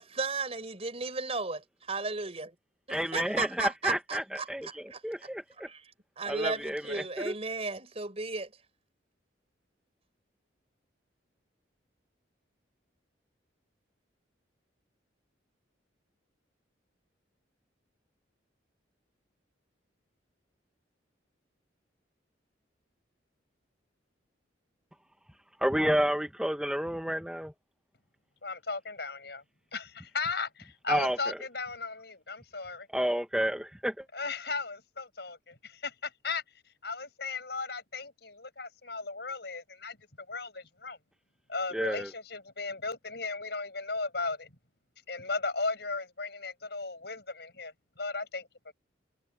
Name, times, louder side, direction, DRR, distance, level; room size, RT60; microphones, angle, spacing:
voice 1, 0.0-2.5 2.9-5.3 5.6-5.9 6.2-8.5, right 3 dB, 30° right, 5.5 m, -35 dB
voice 2, 2.9-5.7 6.3-7.3 25.6-27.5 30.9-31.4 32.9-34.1 41.7-42.1, equal, 5° right, 0.8 m, -30 dB
voice 3, 28.4-29.4 29.7-32.9 34.1-36.4 36.8-41.0 41.5-44.5 45.1-48.7, left 4 dB, 60° left, 6.9 m, -36 dB
head